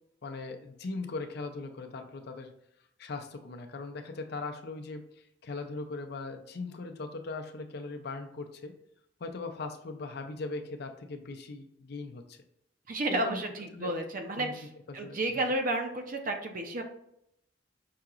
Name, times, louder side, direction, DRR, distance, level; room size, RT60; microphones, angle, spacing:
voice 1, 0.2-2.5 3.0-8.7 9.2-12.4 13.1-13.4 13.7-13.9 14.4-14.5 14.9-15.5, left 3 dB, 60° left, 5 dB, 0.5 m, -39 dB
voice 2, 12.9-14.7 14.9-16.8, right 1 dB, 45° right, 4 dB, 0.6 m, -31 dB
5.7 x 2.8 x 2.4 m, 0.77 s
head